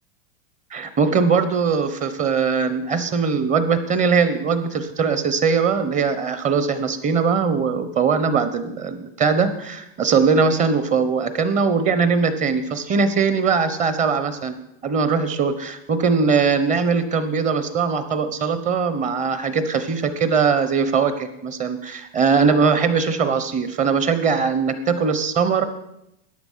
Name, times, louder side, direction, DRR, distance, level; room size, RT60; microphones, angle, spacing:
voice 1, 0.7-14.5 14.8-25.6, right 5 dB, 25° right, 11 dB, 1.2 m, -21 dB
14.0 x 10.0 x 5.8 m, 0.84 s
supercardioid pair, 150°, 32 cm